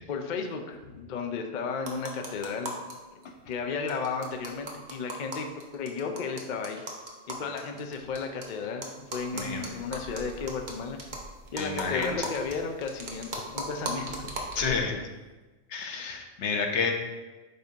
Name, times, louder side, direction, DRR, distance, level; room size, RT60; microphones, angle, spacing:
voice 1, 0.1-2.7 3.5-5.5 5.7-6.8 7.3-11.0 11.5-15.0, left 5 dB, 50° left, 4 dB, 0.7 m, -34 dB
sound 1, 1.8-2.9 3.2-3.3 3.5-3.6 3.9-8.4 8.8-14.8, right 1 dB, 45° right, 1.0 m, -38 dB
voice 2, 9.3-9.7 11.6-12.1 14.6-14.9 15.7-16.9, left 5 dB, 80° left, 3 dB, 1.1 m, -30 dB
7.9 x 2.7 x 5.1 m, 1.2 s
omnidirectional pair, 1.2 m